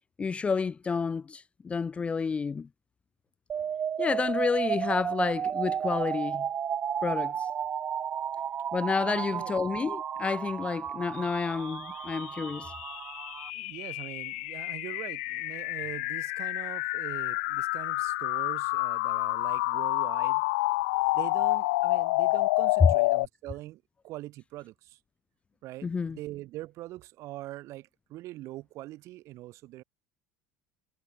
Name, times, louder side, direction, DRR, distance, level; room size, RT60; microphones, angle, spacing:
voice 1, 0.2-2.7 4.0-6.5 7.0-7.3 8.7-12.7 25.8-26.2, left 5 dB, 20° left, 0.4 m, -30 dB
sound 1, 3.5-13.5, right 8 dB, 30° right, 0.5 m, -33 dB
voice 2, 9.1-9.6 13.5-20.4 21.1-25.0 25.6-29.8, right 17 dB, 60° right, 3.4 m, -43 dB
sound 2, 11.4-23.3, left 22 dB, 80° left, 0.7 m, -29 dB
supercardioid pair, 105°, 6 cm